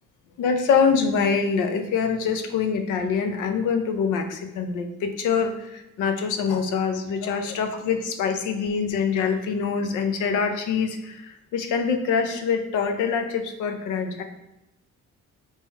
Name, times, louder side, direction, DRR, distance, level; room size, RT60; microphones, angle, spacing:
voice 1, 0.4-14.2, left 6 dB, 90° left, 6 dB, 0.7 m, -25 dB
3.7 x 3.0 x 4.2 m, 0.92 s
cardioid pair, 90°, 30 cm